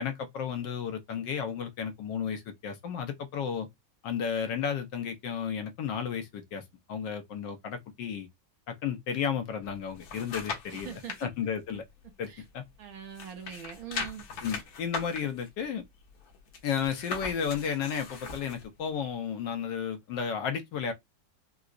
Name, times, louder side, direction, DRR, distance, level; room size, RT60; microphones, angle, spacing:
voice 1, 0.0-3.7 4.0-6.6 6.9-8.3 8.7-10.9 11.2-11.8 12.2-12.6 14.4-15.8 16.6-20.9, left 7 dB, 80° left, 1.4 m, -33 dB
sound 1, 9.6-11.2 11.7-12.8 13.1-18.7 19.1-19.2, left 4 dB, 65° left, 1.2 m, -40 dB
voice 2, 10.7-11.3 12.3-12.4 12.8-14.3, right 8 dB, 65° right, 1.1 m, -42 dB
4.6 x 2.0 x 2.4 m
omnidirectional pair, 1.9 m